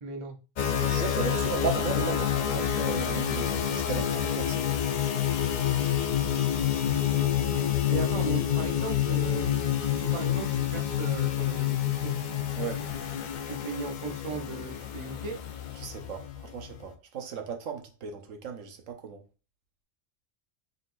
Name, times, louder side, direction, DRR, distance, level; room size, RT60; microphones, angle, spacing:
voice 1, 0.0-0.4 7.9-12.1 13.5-15.4, right 4 dB, 40° right, 0.5 m, -37 dB
sound 1, 0.6-16.9, left 10 dB, 65° left, 0.4 m, -28 dB
voice 2, 0.7-4.8 12.6-12.9 15.8-19.2, right 6 dB, 90° right, 1.1 m, -36 dB
3.9 x 3.7 x 2.5 m
omnidirectional pair, 1.3 m